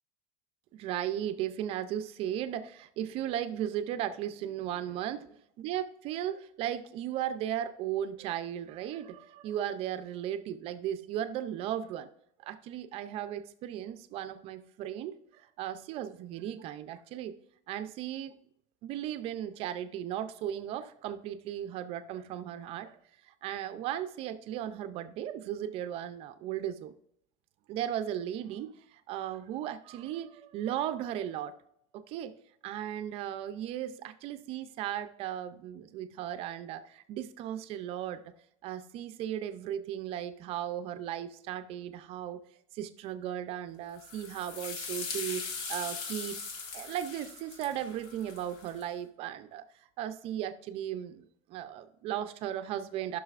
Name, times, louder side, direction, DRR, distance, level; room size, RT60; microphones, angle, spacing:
voice 1, 0.7-5.2 5.6-12.1 12.4-17.3 17.7-18.4 18.8-23.0 23.4-26.9 27.7-31.6 31.9-32.3 32.6-38.2 38.6-42.4 42.7-46.4 46.7-49.7 50.0-51.2 51.5-53.2, right 11 dB, 35° right, 11 dB, 0.4 m, -36 dB
sound 1, 44.0-48.8, left 4 dB, 70° left, 1.5 m, -40 dB
14.0 x 6.1 x 2.4 m, 0.71 s
cardioid pair, 175°, 17 cm